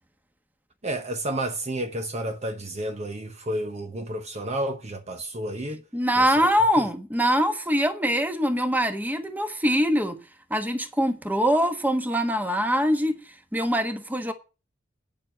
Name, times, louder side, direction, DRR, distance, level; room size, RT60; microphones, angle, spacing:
voice 1, 0.8-5.8 6.2-6.5, right 1 dB, 35° right, 1.0 m, -31 dB
voice 2, 5.9-10.2 10.5-13.2 13.5-14.3, equal, 10° right, 1.3 m, -23 dB
9.3 x 7.7 x 7.3 m
head